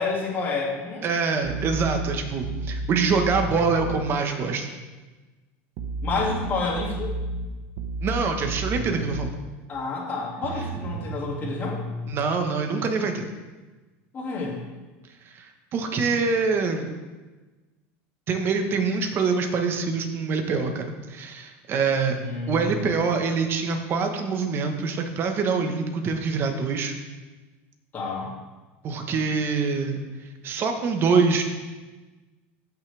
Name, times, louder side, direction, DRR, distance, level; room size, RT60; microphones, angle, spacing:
voice 1, 0.0-1.0 6.0-7.1 9.7-11.8 14.1-14.6 22.2-22.9 27.9-28.3, left 3 dB, 30° left, -4 dB, 2.5 m, -29 dB
voice 2, 1.0-4.7 8.0-9.3 12.1-13.3 15.3-16.9 18.3-22.2 22.5-26.9 28.8-30.0 30.4-31.4, right 5 dB, 35° right, 5 dB, 1.3 m, -25 dB
sound 1, 1.4-4.0 5.8-9.4 10.4-12.1, right 2 dB, 60° right, 1.0 m, -32 dB
15.0 x 6.1 x 3.5 m, 1.2 s
supercardioid pair, 130°, 6 cm